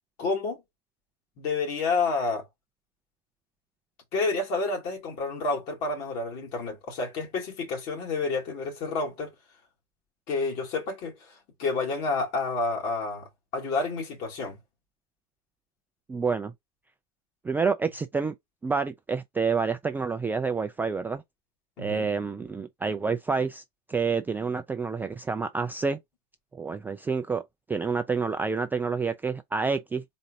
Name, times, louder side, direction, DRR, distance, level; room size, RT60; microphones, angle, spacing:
voice 1, 0.2-0.6 1.4-2.4 4.1-9.3 10.3-11.1 11.6-13.2 13.5-14.6 21.8-22.1, left 3 dB, 50° left, 2.0 m, -29 dB
voice 2, 16.1-16.5 17.4-18.3 18.6-21.2 21.8-23.6 23.9-26.0 26.5-30.0, right 5 dB, 10° right, 0.3 m, -28 dB
4.2 x 3.9 x 2.7 m
hypercardioid pair, 105°, 21 cm